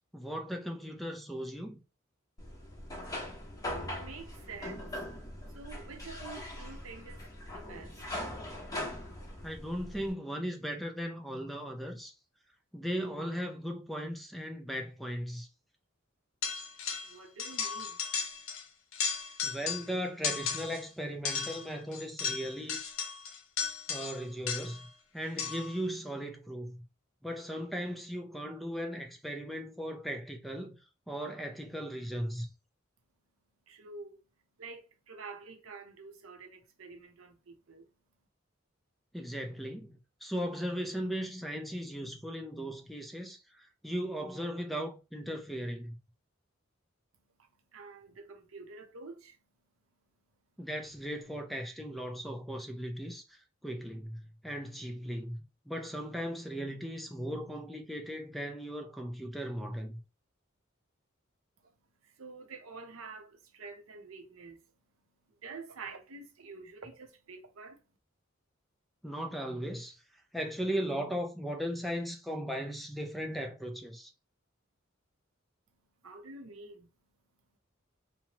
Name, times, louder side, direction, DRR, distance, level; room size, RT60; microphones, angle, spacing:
voice 1, 0.1-1.8 9.4-12.1 12.7-15.5 19.4-22.8 23.9-24.8 25.1-26.8 27.2-30.8 31.1-32.5 39.1-46.0 50.6-55.4 55.7-60.0 69.0-70.0 70.3-74.1, equal, ahead, 0.4 m, -37 dB
sound 1, 2.4-10.1, left 1 dB, 20° left, 0.9 m, -41 dB
voice 2, 4.0-5.0 5.5-8.2 17.0-18.0 33.7-34.2 34.6-37.9 47.1-50.7 61.6-68.0 75.7-77.6, right 4 dB, 85° right, 0.7 m, -49 dB
sound 2, 16.4-17.1 17.4-18.6 18.9-19.9 20.2-20.8 21.3-24.9 25.4-25.8, left 6 dB, 75° left, 0.6 m, -35 dB
2.9 x 2.1 x 2.9 m
head